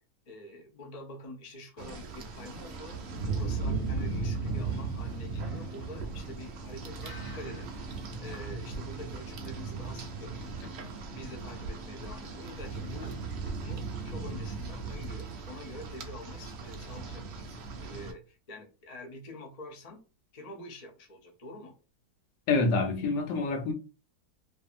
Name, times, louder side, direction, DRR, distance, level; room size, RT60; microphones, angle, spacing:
voice 1, 0.3-7.7 8.2-10.5 11.1-13.1 13.6-20.0 20.3-21.7, left 1 dB, 65° left, 0.3 m, -46 dB
Rain, 1.8-18.1, right 4 dB, 80° right, 0.6 m, -37 dB
sound 1, 2.5-14.1, equal, 20° right, 0.7 m, -51 dB
voice 2, 22.5-23.7, left 3 dB, 90° left, 1.3 m, -27 dB
2.6 x 2.6 x 2.4 m
omnidirectional pair, 1.8 m